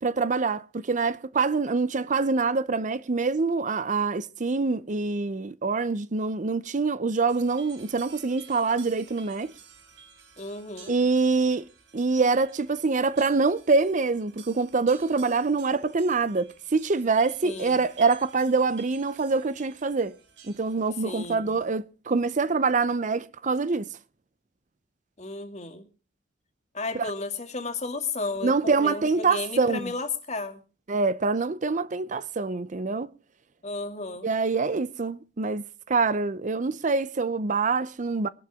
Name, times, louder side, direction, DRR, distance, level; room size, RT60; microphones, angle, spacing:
voice 1, 0.0-9.5 10.9-11.7 11.9-20.2 20.5-23.9 26.9-27.1 28.4-29.9 30.9-33.1 34.2-38.3, right 4 dB, 45° right, 0.6 m, -25 dB
sound 1, 7.3-21.7, right 7 dB, 80° right, 4.1 m, -52 dB
voice 2, 10.4-10.9 17.4-17.8 21.0-21.6 25.2-25.8 26.7-30.6 33.6-34.3, left 3 dB, 40° left, 2.4 m, -33 dB
23.0 x 12.0 x 3.6 m
head